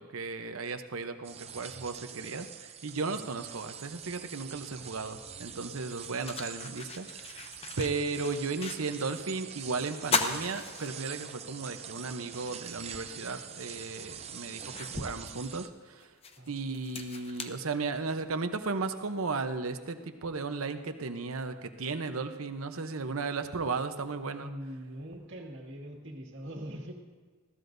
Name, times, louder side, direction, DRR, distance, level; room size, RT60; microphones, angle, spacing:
voice 1, 0.0-7.5 7.8-16.1 16.5-24.5, right 4 dB, 80° right, 8 dB, 0.9 m, -35 dB
sound 1, 1.2-15.7, right 8 dB, 30° right, 0.6 m, -45 dB
sound 2, 5.2-5.3 5.8-9.2 9.5-9.6 10.0-11.5 11.9-12.0 13.5-13.6 14.1-18.3, left 3 dB, 30° left, 0.8 m, -37 dB
voice 2, 24.4-26.9, equal, 60° right, 1 dB, 2.0 m, -42 dB
20.5 x 15.5 x 2.7 m, 1.5 s
head